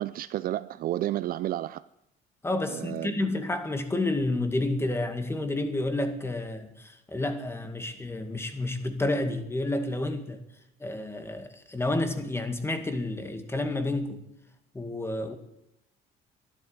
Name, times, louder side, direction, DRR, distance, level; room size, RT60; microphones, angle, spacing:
voice 1, 0.0-1.8 2.7-3.4, right 14 dB, 60° right, 0.5 m, -31 dB
voice 2, 2.4-10.4 10.8-14.2 14.7-15.3, left 2 dB, 15° left, 2.1 m, -30 dB
12.5 x 11.5 x 9.5 m
cardioid pair, 110°, 17 cm